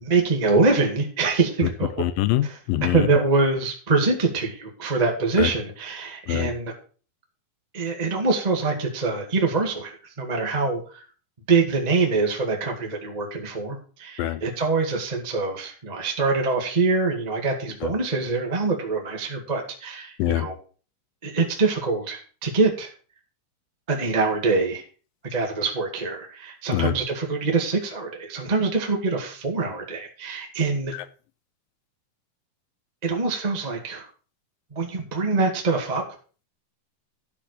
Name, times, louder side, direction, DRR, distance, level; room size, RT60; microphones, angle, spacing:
voice 1, 0.0-1.9 2.4-2.6 2.9-6.7 7.7-11.0 11.5-20.6 21.2-22.9 23.9-24.8 25.3-30.9 33.0-34.1 34.7-36.0, right 3 dB, 20° right, 1 dB, 1.2 m, -24 dB
voice 2, 2.0-3.1 5.4-5.5 6.3-6.5 14.2-14.4 17.8-17.9 20.2-20.5 26.7-26.9, left 14 dB, 85° left, 13 dB, 2.4 m, -24 dB
12.0 x 5.0 x 6.6 m, 0.39 s
omnidirectional pair, 4.2 m